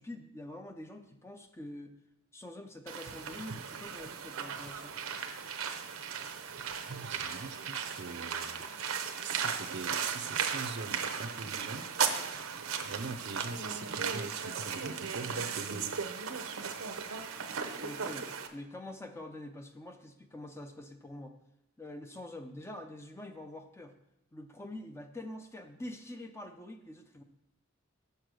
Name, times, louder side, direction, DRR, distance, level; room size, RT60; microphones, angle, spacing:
voice 1, 0.0-1.9 2.3-5.0 17.8-21.4 21.8-24.0 24.3-27.2, left 1 dB, 10° left, 6 dB, 0.4 m, -45 dB
sound 1, 2.9-18.5, right 6 dB, 90° right, 0.7 m, -36 dB
voice 2, 6.6-8.6 9.2-11.9 12.8-16.0, right 4 dB, 55° right, 9 dB, 0.6 m, -42 dB
6.6 x 5.4 x 6.2 m, 0.86 s
head